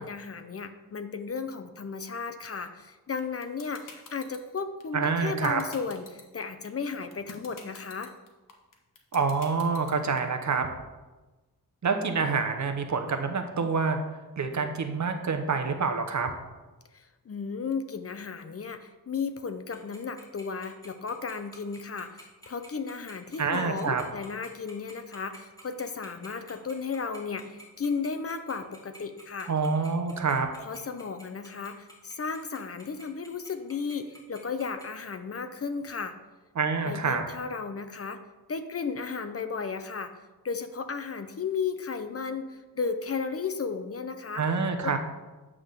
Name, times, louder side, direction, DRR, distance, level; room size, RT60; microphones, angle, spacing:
voice 1, 0.0-8.1 16.9-29.5 30.6-36.2 36.8-38.2 38.5-40.1 40.4-44.4 44.8-45.0, left 5 dB, 40° left, 9 dB, 0.5 m, -34 dB
sound 1, 3.2-10.2, left 5 dB, 55° left, 1.3 m, -46 dB
voice 2, 4.9-5.6 9.1-10.7 11.8-14.0 14.4-16.3 23.4-24.0 29.5-30.5 36.6-37.2 44.3-45.0, right 5 dB, 50° right, 6 dB, 0.9 m, -27 dB
Tick-tock, 19.7-34.8, right 1 dB, 10° left, 2.4 m, -49 dB
9.3 x 3.7 x 6.6 m, 1.2 s
wide cardioid pair, 120°, 37 cm